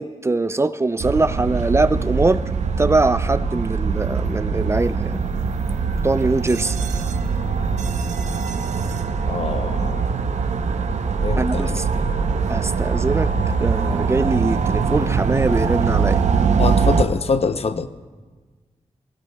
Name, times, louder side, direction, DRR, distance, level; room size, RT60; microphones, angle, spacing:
voice 1, 0.0-2.4 2.8-5.2 6.0-6.8 11.4-11.8 12.5-13.3 13.6-16.2, right 3 dB, 25° right, 13 dB, 0.4 m, -22 dB
sound 1, 1.0-17.0, right 5 dB, 90° right, 0.6 m, -22 dB
voice 2, 9.3-10.2 11.2-12.0 16.6-17.9, left 4 dB, 60° left, 10 dB, 0.6 m, -24 dB
21.5 x 18.5 x 2.2 m, 1.4 s
wide cardioid pair, 95°, 12 cm